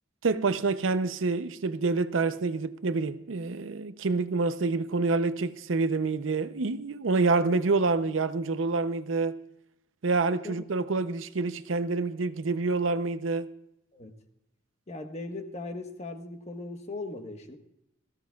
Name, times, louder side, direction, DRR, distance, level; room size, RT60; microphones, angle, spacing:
voice 1, 0.2-9.4 10.0-13.5, right 3 dB, 85° right, 0.6 m, -27 dB
voice 2, 14.9-17.6, left 2 dB, 35° left, 1.2 m, -38 dB
17.5 x 15.0 x 2.4 m
head